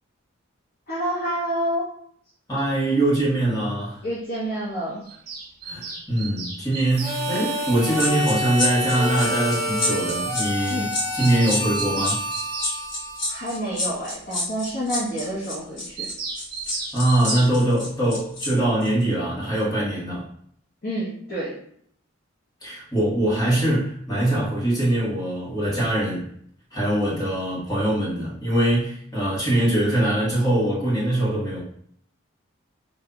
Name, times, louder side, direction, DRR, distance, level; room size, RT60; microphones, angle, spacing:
voice 1, 0.9-1.9 4.0-5.0 10.7-10.9 13.3-16.0 20.8-21.5, right 1 dB, 50° left, -6 dB, 0.8 m, -28 dB
voice 2, 2.5-4.0 5.6-12.2 16.9-20.2 22.6-26.3 26.7-31.6, right 1 dB, 20° left, -7 dB, 1.3 m, -23 dB
Bird vocalization bird call bird song, 5.0-7.2 8.6-8.7 9.0-9.1 9.3-9.4 9.7-9.8 10.0-10.1 10.4-10.5 10.8-12.8 16.0-17.5, right 5 dB, 50° right, 0.6 m, -34 dB
Harmonica, 6.9-13.8, equal, 15° right, 1.0 m, -29 dB
sound 1, 7.9-18.5 18.8-19.0, left 2 dB, 65° left, 1.2 m, -29 dB
5.2 x 2.6 x 2.3 m, 0.65 s
head